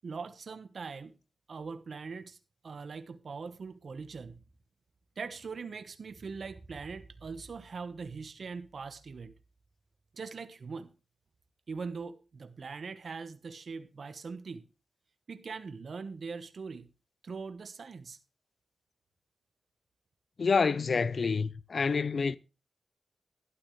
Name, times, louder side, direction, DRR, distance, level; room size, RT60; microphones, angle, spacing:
voice 1, 0.0-1.1 1.5-2.4 2.6-4.4 5.2-9.3 10.1-10.9 11.7-14.7 15.3-16.9 17.2-18.2, right 5 dB, 75° right, 1.1 m, -41 dB
voice 2, 20.4-22.4, left 5 dB, 70° left, 0.6 m, -27 dB
12.5 x 12.0 x 3.2 m
cardioid pair, 45°, 0 cm